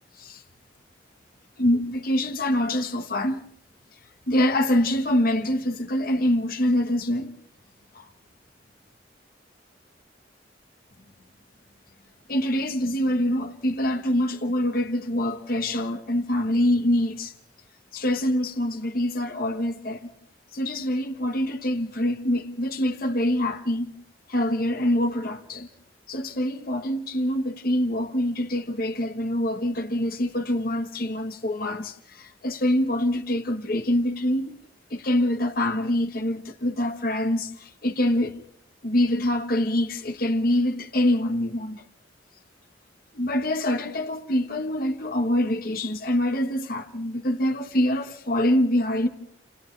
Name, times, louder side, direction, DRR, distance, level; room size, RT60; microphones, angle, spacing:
voice 1, 1.6-3.4 4.3-7.3 7.9-8.1 12.3-17.3 17.9-20.1 20.5-23.9 24.3-25.7 26.1-34.5 34.9-38.3 38.8-41.8 43.1-49.1, left 1 dB, 50° left, 1.4 m, -25 dB
29.0 x 26.5 x 3.3 m
head